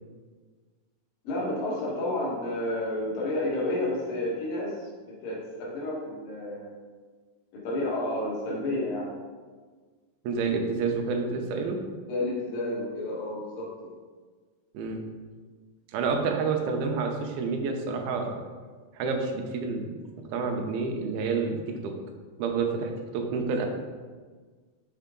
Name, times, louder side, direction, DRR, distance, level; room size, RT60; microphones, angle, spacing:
voice 1, 1.2-4.9 5.2-6.7 7.5-9.1 12.1-13.9, left 1 dB, 70° left, -4 dB, 3.1 m, -30 dB
voice 2, 10.2-11.8 14.7-15.0 15.9-18.4 18.9-19.9 20.3-21.9 22.4-23.7, right 4 dB, 90° right, 3 dB, 2.7 m, -29 dB
6.0 x 5.5 x 3.8 m, 1.5 s
omnidirectional pair, 4.2 m